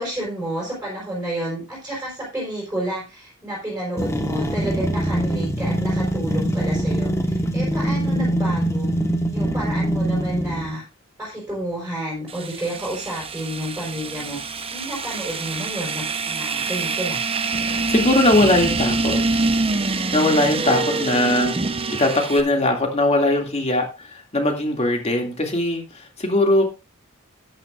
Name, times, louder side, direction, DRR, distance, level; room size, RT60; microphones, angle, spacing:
voice 1, 0.0-8.9 9.3-10.8 11.2-14.4 14.7-17.2, right 1 dB, 5° right, -5 dB, 4.8 m, -30 dB
sound 1, 4.0-10.7, right 1 dB, 15° left, 1.4 m, -23 dB
voice 2, 7.8-8.2 17.6-19.2 19.7-21.5 22.0-26.7, left 1 dB, 30° left, 3 dB, 2.4 m, -21 dB
sound 2, 12.3-22.4, right 3 dB, 25° right, 0.9 m, -25 dB
13.0 x 9.9 x 2.5 m, 0.28 s
head